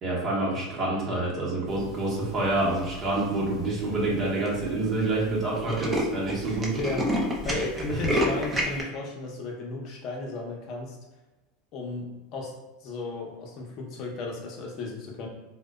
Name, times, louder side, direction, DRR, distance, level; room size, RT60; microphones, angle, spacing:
voice 1, 0.0-6.7 7.9-8.0, right 2 dB, 35° right, -5 dB, 0.9 m, -27 dB
Tools, 2.8-3.2 3.8-3.9 4.1-4.2 4.5-4.7 5.0-5.1 5.3-8.8, equal, 15° right, 0.5 m, -28 dB
voice 2, 6.8-11.0 11.7-12.5 12.8-15.3, left 2 dB, 45° left, -1 dB, 0.6 m, -34 dB
2.6 x 2.1 x 2.3 m, 1.1 s
supercardioid pair, 130°, 0 cm